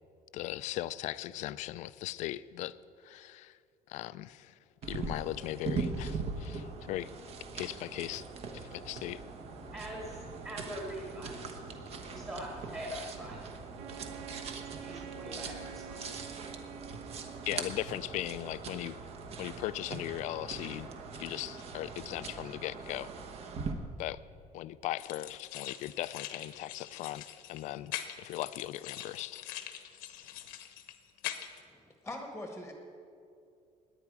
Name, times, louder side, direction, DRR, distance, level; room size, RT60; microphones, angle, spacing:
voice 1, 0.3-2.7 3.0-3.6 3.9-4.5 4.9-7.1 7.6-8.2 8.7-9.2 17.5-19.0 19.4-20.9 21.2-23.1 24.0-24.2 24.5-29.4, left 15 dB, 55° left, 16 dB, 0.4 m, -38 dB
sound 1, 4.8-23.7, right 4 dB, 45° right, 1.1 m, -41 dB
voice 2, 8.5-16.4, equal, 20° right, -2 dB, 1.9 m, -45 dB
Wind instrument woodwind instrument, 13.8-18.1, right 8 dB, 60° right, 0.8 m, -48 dB
sound 2, 25.0-31.6, left 12 dB, 80° left, 1.0 m, -43 dB
voice 3, 31.6-32.7, left 1 dB, ahead, 3 dB, 1.2 m, -43 dB
18.0 x 10.5 x 4.7 m, 2.4 s
cardioid pair, 170°, 15 cm